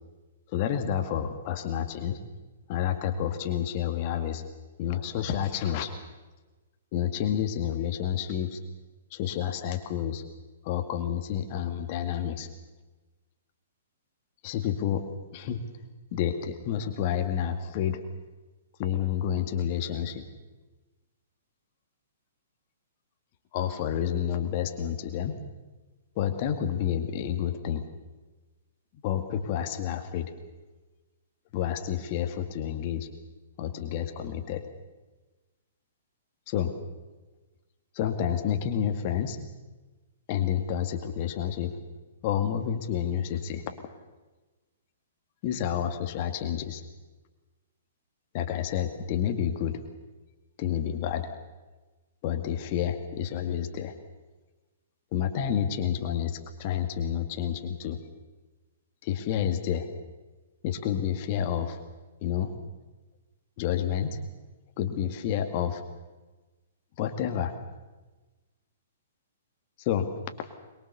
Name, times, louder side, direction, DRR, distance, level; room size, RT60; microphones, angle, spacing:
voice 1, 0.5-2.2 2.7-4.4 4.8-6.0 6.9-8.6 9.1-10.2 10.6-12.5 14.4-15.1 15.3-15.6 16.1-18.0 18.8-20.2 23.5-25.4 26.2-27.8 29.0-30.3 31.5-33.1 33.6-34.7 36.5-36.7 37.9-39.4 40.3-41.8 42.2-43.6 45.4-46.8 48.3-49.8 50.6-51.3 52.2-53.9 55.1-58.0 59.0-59.9 60.6-61.8 62.2-62.5 63.6-64.2 64.8-65.8 67.0-67.5 69.8-70.1, left 9 dB, 40° left, 7 dB, 2.1 m, -29 dB
23.5 x 22.5 x 6.9 m, 1.2 s
figure-of-eight pair, 115°, 0 cm